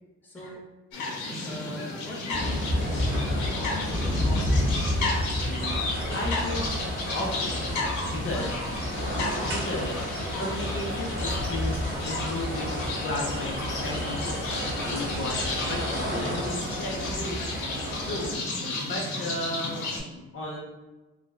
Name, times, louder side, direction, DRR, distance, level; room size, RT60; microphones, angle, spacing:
voice 1, 0.2-0.6 1.4-4.7 8.3-8.5, left 1 dB, 5° left, -3 dB, 0.7 m, -41 dB
sound 1, 0.9-20.0, left 2 dB, 90° left, 0.9 m, -33 dB
sound 2, 2.3-18.4, equal, 85° right, 1.2 m, -30 dB
voice 2, 5.4-6.7 7.1-8.5 9.4-10.0 10.4-20.6, left 1 dB, 45° left, -1 dB, 0.6 m, -35 dB
3.2 x 2.1 x 2.3 m, 1.1 s
cardioid pair, 90°, 30 cm